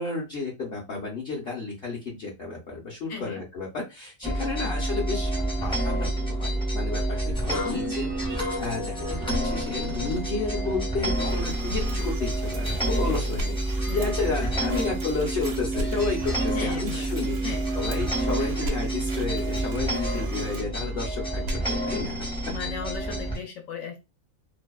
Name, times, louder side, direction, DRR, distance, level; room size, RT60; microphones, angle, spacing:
voice 1, 0.0-5.3 5.6-22.2 23.1-23.2, left 4 dB, 50° left, -5 dB, 0.8 m, -32 dB
voice 2, 3.1-3.4 4.6-4.8 7.5-8.1 9.2-9.4 13.8-14.0 14.4-14.8 16.5-17.8 18.4-18.9 22.5-24.0, left 7 dB, 75° left, 3 dB, 1.0 m, -37 dB
sound 1, 4.2-23.4, right 1 dB, 5° left, 0.4 m, -28 dB
sound 2, 11.1-20.6, right 4 dB, 55° right, 0.6 m, -45 dB
sound 3, 13.3-13.5 15.7-15.9 18.6-18.8 21.4-21.6, left 1 dB, 75° right, 1.0 m, -35 dB
2.7 x 2.1 x 2.2 m, 0.24 s
omnidirectional pair, 1.5 m